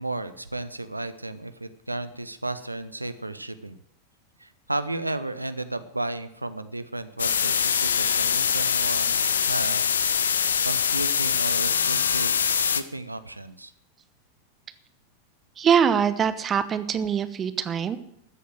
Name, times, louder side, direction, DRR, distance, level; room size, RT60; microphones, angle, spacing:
voice 1, 0.0-3.8 4.4-9.9 10.6-13.7, right 2 dB, 85° right, 12 dB, 0.8 m, -33 dB
sound 1, 7.2-12.8, left 7 dB, 70° left, 0.8 m, -23 dB
voice 2, 15.6-18.0, right 7 dB, 25° right, 13 dB, 0.9 m, -23 dB
14.0 x 8.3 x 7.7 m, 0.75 s
figure-of-eight pair, 90°, 0 cm